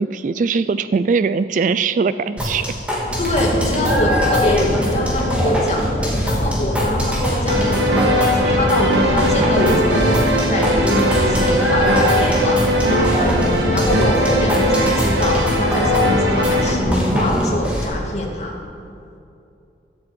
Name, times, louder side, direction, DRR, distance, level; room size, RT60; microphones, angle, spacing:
voice 1, 0.0-2.7, right 5 dB, 45° right, 14 dB, 0.3 m, -20 dB
sound 1, 2.4-17.8, left 1 dB, 5° right, 2.4 m, -23 dB
Boat Water vehicle, 3.0-17.3, equal, 65° left, 2.9 m, -24 dB
voice 2, 3.2-5.8 6.2-18.5, left 1 dB, 40° left, -1 dB, 2.0 m, -23 dB
sound 2, 7.5-16.7, equal, 75° right, 1.7 m, -20 dB
11.5 x 8.5 x 7.8 m, 2.6 s
head